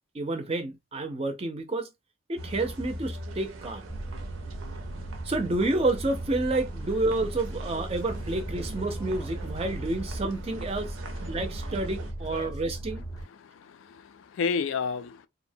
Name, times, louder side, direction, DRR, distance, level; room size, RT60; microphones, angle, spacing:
voice 1, 0.1-1.9 2.3-3.8 5.2-11.0 11.3-13.1, right 2 dB, 30° right, 0.4 m, -29 dB
sound 1, 2.4-12.1, right 2 dB, 85° right, 0.5 m, -42 dB
sound 2, 3.9-13.2, right 1 dB, 20° left, 0.6 m, -37 dB
voice 2, 13.4-15.3, left 5 dB, 80° left, 0.3 m, -31 dB
2.7 x 2.0 x 2.6 m
head